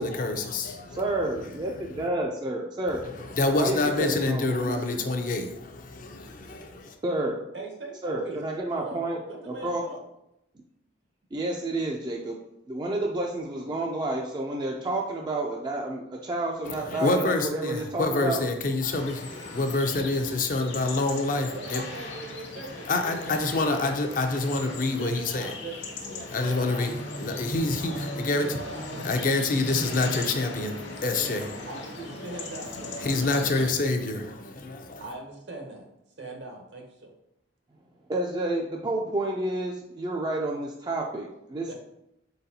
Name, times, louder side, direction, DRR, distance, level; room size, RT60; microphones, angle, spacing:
voice 1, 0.0-1.0 1.8-2.1 2.9-6.9 16.6-21.8 22.9-25.5 26.1-28.6 29.0-31.7 33.0-35.0, left 2 dB, 45° left, 5 dB, 0.5 m, -27 dB
voice 2, 0.9-3.0 3.6-5.1 7.0-7.4 8.0-9.2 9.5-9.8 11.3-12.4 12.7-18.4 38.1-41.7, right 2 dB, 25° right, -1 dB, 0.3 m, -30 dB
voice 3, 7.5-8.4 8.7-10.0 21.5-24.0 25.0-25.9 26.4-26.9 27.9-29.3 31.7-33.5 35.0-35.9 36.2-37.1 41.7-41.8, right 2 dB, 65° right, 2 dB, 0.9 m, -41 dB
sound 1, 18.9-33.7, left 2 dB, 70° left, 0.8 m, -38 dB
4.4 x 4.0 x 2.7 m, 0.84 s
head